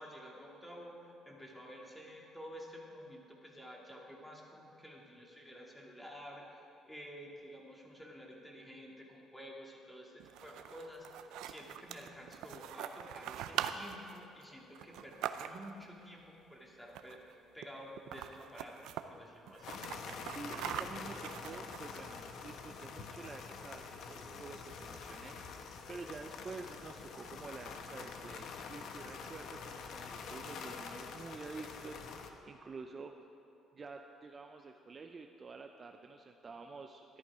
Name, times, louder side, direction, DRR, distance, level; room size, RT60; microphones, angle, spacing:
voice 1, 0.0-19.8, equal, 5° left, -2 dB, 2.4 m, -51 dB
sound 1, 10.2-15.8 16.9-17.3 17.6-17.7 18.0-19.0 19.5-22.1, right 10 dB, 85° right, 0.5 m, -43 dB
sound 2, 19.6-32.3, left 5 dB, 70° left, 1.0 m, -46 dB
voice 2, 20.2-33.1 33.8-37.2, right 4 dB, 30° right, 4 dB, 0.6 m, -49 dB
13.0 x 11.0 x 4.9 m, 2.6 s
cardioid pair, 105°, 0 cm